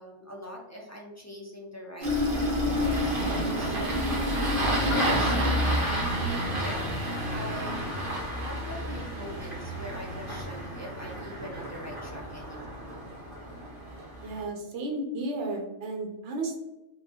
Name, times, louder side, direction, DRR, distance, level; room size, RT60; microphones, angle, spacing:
voice 1, 0.0-4.2 4.9-5.7 6.5-8.0 8.4-12.9, left 1 dB, 25° left, -2 dB, 0.3 m, -42 dB
Engine starting, 2.0-14.4, equal, 50° right, 1.3 m, -29 dB
voice 2, 14.2-16.6, right 2 dB, 75° right, 2 dB, 0.9 m, -33 dB
4.5 x 2.2 x 2.8 m, 0.95 s
omnidirectional pair, 1.2 m